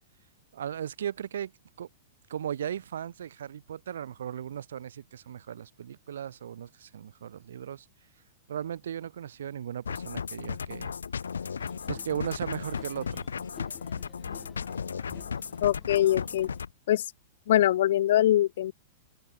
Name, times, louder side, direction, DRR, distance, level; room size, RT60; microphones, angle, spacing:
voice 1, 0.5-1.5 1.8-1.9 2.3-7.9 8.5-10.9 11.9-13.3, right 9 dB, 70° right, 1.3 m, -36 dB
sound 1, 9.8-16.7, left 6 dB, 80° left, 4.2 m, -35 dB
sound 2, 11.6-16.6, left 8 dB, 20° left, 5.5 m, -52 dB
voice 2, 15.6-16.5 16.9-17.0 17.5-18.7, left 12 dB, 60° left, 0.8 m, -23 dB
open air
figure-of-eight pair, 105°, 0 cm